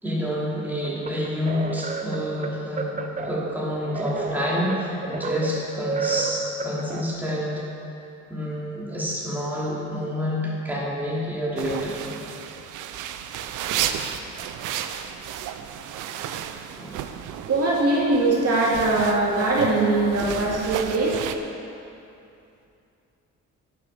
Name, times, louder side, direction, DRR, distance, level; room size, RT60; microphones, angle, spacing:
voice 1, 0.0-7.6 8.3-12.3 16.7-16.9, equal, 5° right, -6 dB, 2.6 m, -28 dB
sound 1, 0.8-7.0, right 4 dB, 25° right, 0.8 m, -31 dB
sound 2, 11.6-21.3, right 9 dB, 90° right, 0.6 m, -33 dB
voice 2, 17.5-21.2, right 2 dB, 55° right, -5 dB, 2.3 m, -21 dB
10.5 x 6.7 x 5.7 m, 2.7 s
cardioid pair, 90°, 30 cm